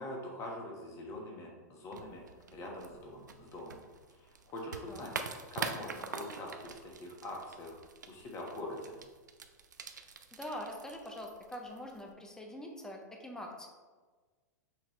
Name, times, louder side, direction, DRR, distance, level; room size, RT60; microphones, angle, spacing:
voice 1, 0.0-3.8 4.1-5.1 5.5-7.8 8.1-8.9, left 1 dB, 30° left, 0 dB, 1.3 m, -44 dB
sound 1, 1.9-12.1, right 5 dB, 80° right, 0.4 m, -45 dB
voice 2, 10.4-13.7, left 1 dB, 5° left, 1 dB, 0.7 m, -44 dB
6.0 x 2.9 x 3.1 m, 1.4 s
hypercardioid pair, 105°, 10 cm